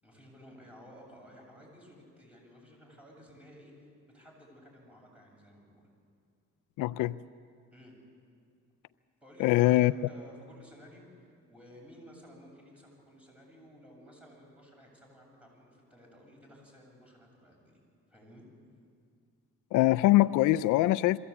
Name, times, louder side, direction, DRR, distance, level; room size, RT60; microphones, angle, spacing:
voice 1, 0.0-5.9 7.7-7.9 9.2-11.1 11.5-17.8 18.1-18.5, equal, 5° right, -2 dB, 7.5 m, -54 dB
voice 2, 6.8-7.2 9.4-9.9 19.7-21.2, left 16 dB, 90° left, 16 dB, 0.5 m, -23 dB
23.0 x 15.5 x 8.5 m, 2.2 s
cardioid pair, 90°, 30 cm